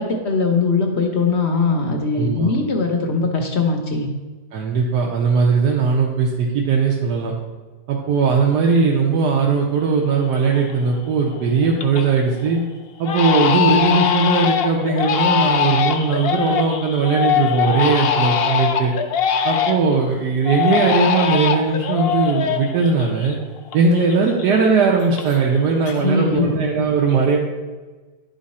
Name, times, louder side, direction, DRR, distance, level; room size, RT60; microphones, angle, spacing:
voice 1, 0.0-4.1 26.0-26.7, left 4 dB, 55° left, 3 dB, 0.9 m, -20 dB
voice 2, 2.1-2.5 4.5-7.3 7.9-12.6 13.0-18.9 19.4-23.4 23.7-27.4, right 4 dB, 80° right, -2 dB, 1.4 m, -19 dB
Crying sobbing, 9.9-10.0 10.4-10.9 11.3-12.1 12.4-12.6 13.0-20.0 20.4-23.8 24.0-25.6 25.8-26.4, left 8 dB, 80° left, 0.5 m, -22 dB
10.5 x 3.9 x 4.2 m, 1.3 s
omnidirectional pair, 1.8 m